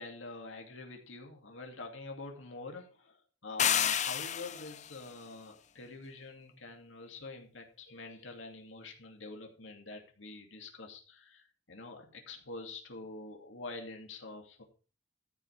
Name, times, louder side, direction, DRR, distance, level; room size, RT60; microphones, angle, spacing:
voice 1, 0.0-3.1 3.4-14.6, left 3 dB, 85° left, 2 dB, 2.6 m, -46 dB
sound 1, 3.6-4.9, left 9 dB, 40° left, 0.6 m, -30 dB
13.5 x 5.4 x 5.8 m, 0.38 s
head